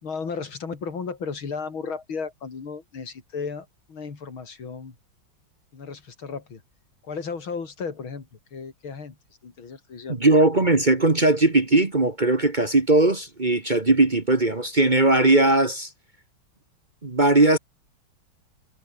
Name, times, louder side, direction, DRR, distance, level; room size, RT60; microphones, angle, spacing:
voice 1, 0.0-5.0 5.7-6.6 7.0-9.2 9.4-10.2, left 5 dB, 80° left, 3.9 m, -34 dB
voice 2, 10.1-15.9 17.0-17.6, right 2 dB, 25° right, 1.6 m, -19 dB
omnidirectional pair, 2.2 m